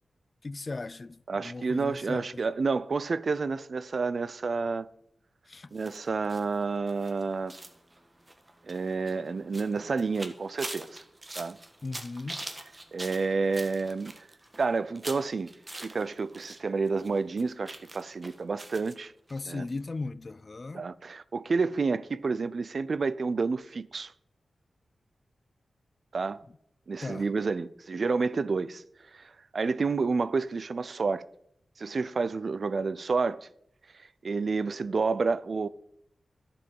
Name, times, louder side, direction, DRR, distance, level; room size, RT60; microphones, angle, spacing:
voice 1, 0.4-2.2 5.5-5.7 11.8-12.4 19.3-20.8 27.0-27.3, left 3 dB, 40° left, 0.3 m, -37 dB
voice 2, 1.3-4.9 5.7-7.5 8.7-11.0 11.4-11.6 12.9-14.2 14.6-15.5 15.8-19.1 19.5-19.7 20.7-24.1 26.1-26.4 26.9-28.8 29.1-29.2 29.5-31.2 31.8-33.5 34.2-35.7, right 4 dB, 60° right, 0.4 m, -29 dB
sound 1, 5.7-16.6 16.9-18.9 19.3-19.4 19.7-19.8, right 1 dB, 30° right, 1.3 m, -44 dB
11.0 x 7.1 x 5.4 m
cardioid pair, 60°, 0 cm